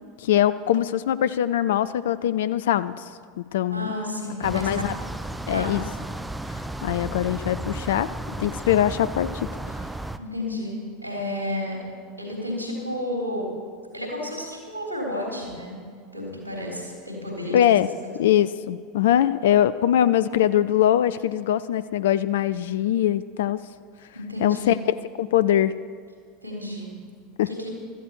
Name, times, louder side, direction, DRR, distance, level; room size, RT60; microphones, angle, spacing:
voice 1, 0.2-3.0 3.4-3.9 4.4-4.9 5.5-5.8 6.8-8.1 8.4-9.5 17.5-17.9 18.2-23.6 24.4-25.7 27.4-27.5, left 11 dB, 65° left, 15 dB, 0.3 m, -22 dB
voice 2, 3.7-4.8 5.5-5.8 10.2-11.8 12.2-13.5 13.9-15.8 16.1-17.8 18.0-18.1 24.1-24.8 26.4-26.9 27.5-27.7, left 1 dB, 90° left, -2 dB, 3.5 m, -31 dB
sound 1, 4.4-10.2, right 1 dB, 5° right, 0.6 m, -33 dB
16.0 x 13.0 x 4.7 m, 2.1 s
figure-of-eight pair, 80°, 0 cm